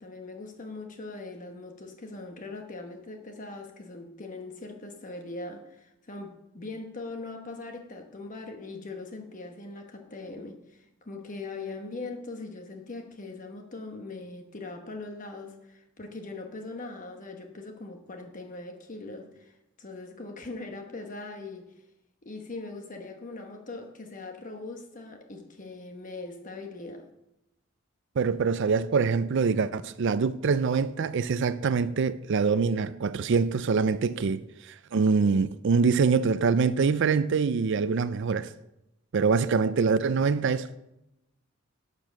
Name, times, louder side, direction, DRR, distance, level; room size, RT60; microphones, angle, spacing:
voice 1, 0.0-21.7 22.2-27.1, left 3 dB, 40° left, 1.1 m, -41 dB
voice 2, 28.2-38.5 39.1-40.8, right 5 dB, 65° right, 0.4 m, -24 dB
12.0 x 6.9 x 6.1 m
head